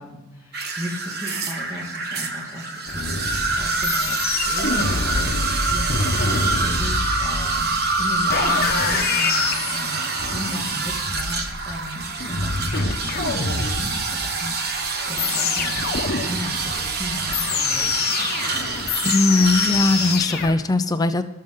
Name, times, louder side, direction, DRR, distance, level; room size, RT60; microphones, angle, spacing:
voice 1, 0.0-15.9 16.1-17.9 18.2-18.4, left 1 dB, 15° right, -6 dB, 2.4 m, -36 dB
sound 1, 0.5-20.1, right 3 dB, 45° right, 1.3 m, -26 dB
sound 2, 2.9-20.5, left 4 dB, 45° left, 1.1 m, -26 dB
voice 2, 19.0-21.2, left 2 dB, 15° left, 9 dB, 0.6 m, -19 dB
20.0 x 6.6 x 3.8 m, 1.1 s
head